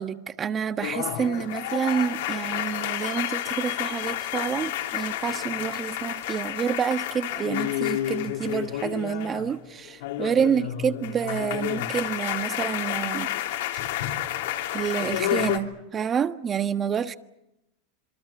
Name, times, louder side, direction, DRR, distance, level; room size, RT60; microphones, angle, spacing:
voice 1, 0.0-13.3 14.7-17.1, right 7 dB, 30° right, 1.4 m, -28 dB
sound 1, 0.8-9.6 9.8-15.6, left 12 dB, 75° left, 3.2 m, -30 dB
27.0 x 23.5 x 7.2 m
hypercardioid pair, 110°, 0 cm